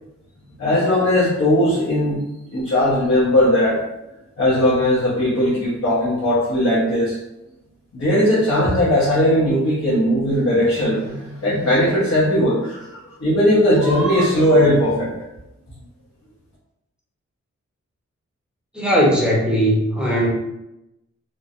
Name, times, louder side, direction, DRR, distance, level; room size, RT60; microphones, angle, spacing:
voice 1, 0.6-2.2 2.5-3.8 4.4-7.2 7.9-12.8 13.2-15.1, left 1 dB, 50° left, -9 dB, 0.9 m, -18 dB
voice 2, 18.7-20.3, equal, 5° right, -5 dB, 0.8 m, -18 dB
3.2 x 2.1 x 2.5 m, 0.92 s
wide cardioid pair, 95°, 29 cm